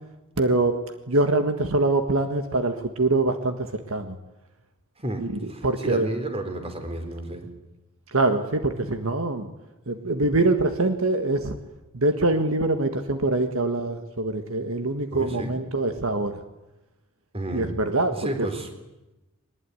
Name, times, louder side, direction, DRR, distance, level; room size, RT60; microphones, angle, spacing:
voice 1, 0.4-0.8 1.1-4.2 5.2-6.1 8.1-9.5 9.9-11.6 11.9-16.3 17.5-18.5, right 2 dB, 70° right, 7 dB, 1.7 m, -24 dB
voice 2, 5.0-7.5 15.1-15.5 17.3-17.7 18.2-18.7, right 1 dB, 25° right, 6 dB, 3.9 m, -31 dB
22.5 x 20.5 x 9.6 m, 1.0 s
head